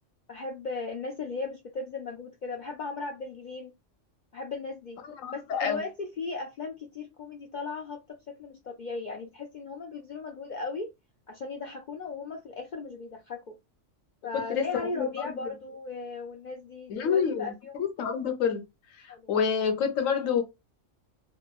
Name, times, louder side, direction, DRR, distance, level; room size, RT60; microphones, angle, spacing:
voice 1, 0.3-3.7 4.3-5.0 5.3-10.9 11.3-13.6 14.2-17.7 19.1-19.4, left 4 dB, 65° left, 0.4 m, -37 dB
voice 2, 5.2-5.8 14.5-15.3 16.9-17.5 17.8-18.6 19.3-20.4, left 7 dB, 90° left, 1.1 m, -27 dB
2.9 x 2.2 x 2.3 m
omnidirectional pair, 1.3 m